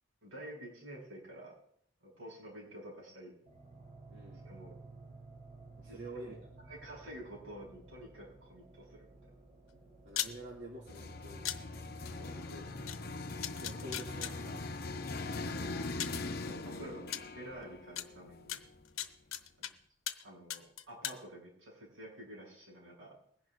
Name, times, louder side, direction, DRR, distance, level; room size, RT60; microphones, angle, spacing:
voice 1, 0.2-1.5 2.0-3.3 4.4-4.7 5.8-6.4 6.7-9.1 12.2-12.6 15.6-16.0 16.5-18.6 19.6-19.7 20.2-23.2, right 1 dB, 70° right, -2 dB, 6.3 m, -49 dB
sound 1, 3.4-15.4, right 3 dB, 40° right, 2.9 m, -56 dB
voice 2, 4.1-4.5 5.8-6.7 9.7-11.5 12.5-12.7 13.6-15.0 16.7-17.0, right 1 dB, 55° right, -3 dB, 2.3 m, -49 dB
sound 2, 10.1-10.3 11.4-11.6 12.9-13.0 13.4-14.3 15.4-15.5 16.0-16.2 17.1-17.2 18.0-18.1 18.5-19.7 20.1-20.2 20.5-21.2, left 11 dB, 85° left, 0.8 m, -37 dB
sound 3, 10.9-18.8, left 3 dB, 50° left, 0.7 m, -41 dB
21.5 x 11.0 x 2.5 m, 0.67 s
head